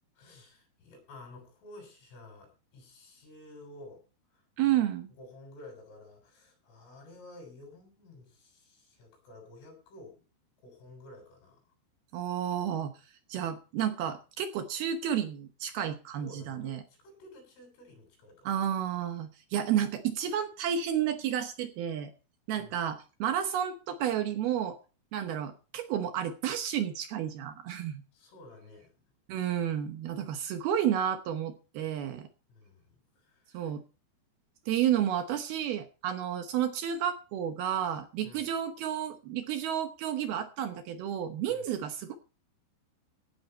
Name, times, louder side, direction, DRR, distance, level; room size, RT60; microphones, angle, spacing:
voice 1, 0.2-4.0 4.3-4.8 5.1-10.2 10.6-11.7 16.2-18.6 22.6-22.9 28.1-28.9 32.5-33.8 38.2-38.5 41.5-41.7, left 2 dB, 85° left, 2 dB, 9.3 m, -52 dB
voice 2, 4.6-5.1 12.1-12.9 13.3-16.8 18.4-22.1 22.5-24.8 25.1-28.0 29.3-32.3 33.5-33.8 34.7-42.2, right 10 dB, 75° right, 8 dB, 2.4 m, -31 dB
16.5 x 10.0 x 4.4 m, 0.34 s
omnidirectional pair, 5.5 m